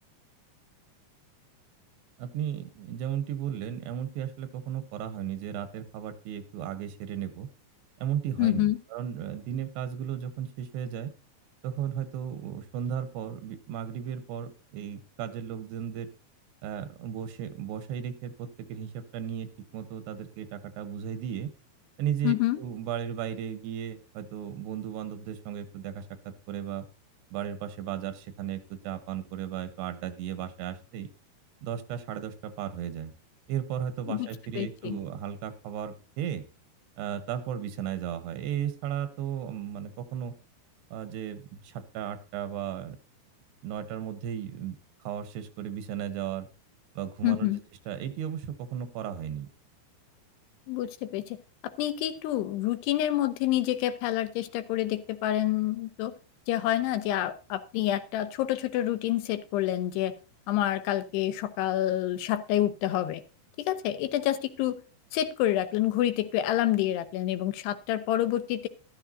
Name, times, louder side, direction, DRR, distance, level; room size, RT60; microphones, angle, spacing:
voice 1, 2.2-7.5 8.0-11.1 11.6-16.1 16.6-19.5 19.7-21.5 22.0-26.9 27.3-31.1 31.6-33.1 33.5-36.4 37.0-40.3 40.9-43.0 43.6-44.8 45.0-46.5 47.0-47.5 47.9-49.5, right 9 dB, 90° right, 10 dB, 3.1 m, -35 dB
voice 2, 8.4-8.8 22.2-22.6 34.1-34.3 34.6-35.0 47.2-47.6 50.7-51.4 51.6-56.1 56.5-60.1 60.5-63.2 63.6-64.8 65.1-68.7, left 13 dB, 80° left, 11 dB, 2.8 m, -28 dB
13.5 x 12.5 x 2.7 m, 0.32 s
omnidirectional pair, 4.8 m